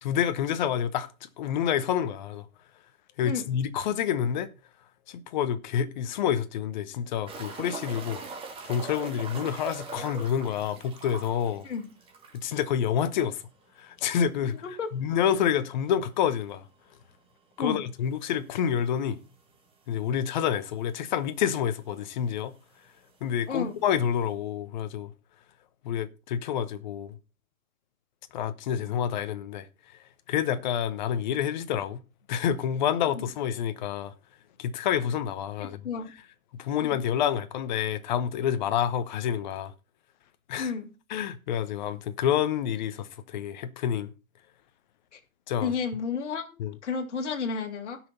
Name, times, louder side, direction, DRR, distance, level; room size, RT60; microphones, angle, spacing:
voice 1, 0.0-2.5 3.2-4.5 5.1-8.2 8.6-11.7 12.3-13.4 13.8-14.6 14.9-16.6 17.6-19.2 19.9-22.5 23.2-25.1 25.8-27.2 28.3-29.7 30.3-32.0 32.3-34.1 34.6-35.8 36.6-39.7 40.5-40.7 41.1-44.1 45.5-45.7 46.6-46.7, left 9 dB, 35° left, 1.0 m, -28 dB
sound 1, 7.3-12.6 12.9-13.0 13.4-13.5 16.2-16.3 18.0-18.1 18.9-19.0 19.2-19.3 20.2-20.3 20.5-21.1 22.1-22.2, right 4 dB, 15° right, 1.7 m, -41 dB
voice 2, 14.6-14.9 17.6-17.8 23.5-23.8 33.1-33.2 35.8-36.1 36.9-37.0 40.6-40.9 45.1-45.2 45.6-46.6 46.8-48.0, left 5 dB, 55° left, 2.2 m, -31 dB
16.5 x 6.1 x 4.1 m
figure-of-eight pair, 125°, 42 cm